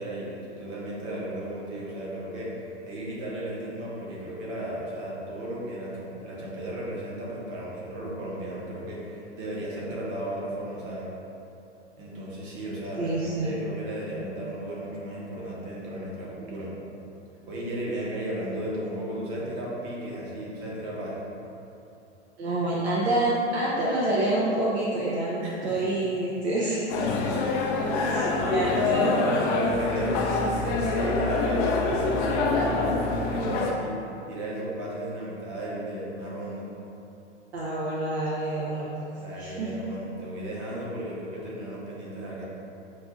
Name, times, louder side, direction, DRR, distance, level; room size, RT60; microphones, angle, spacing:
voice 1, 0.0-11.1 12.0-16.7 17.5-21.2 25.4-25.9 27.8-34.0 34.3-36.7 39.1-42.5, right 1 dB, 35° right, -5 dB, 1.2 m, -35 dB
voice 2, 13.0-13.6 22.4-27.0 28.1-29.1 37.5-38.9 39.4-39.7, right 1 dB, 60° right, -6 dB, 0.8 m, -27 dB
sound 1, 26.9-33.7, left 3 dB, 35° left, 0.5 m, -25 dB
6.5 x 2.7 x 2.4 m, 2.8 s
figure-of-eight pair, 105°, 35 cm